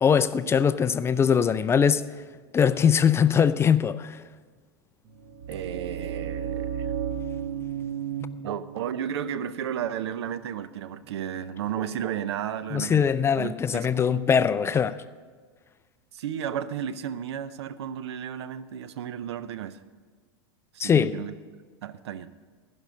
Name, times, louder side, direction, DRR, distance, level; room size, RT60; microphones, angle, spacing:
voice 1, 0.0-2.0 2.5-4.2 12.7-15.0 20.8-21.1, left 7 dB, 20° left, 0.3 m, -21 dB
sound 1, 5.1-11.0, right 8 dB, 45° right, 1.4 m, -34 dB
voice 2, 5.5-6.9 8.4-13.9 16.1-19.8 20.7-21.4 21.8-22.3, right 9 dB, 80° right, 0.6 m, -33 dB
15.5 x 5.4 x 6.3 m
hypercardioid pair, 115°, 14 cm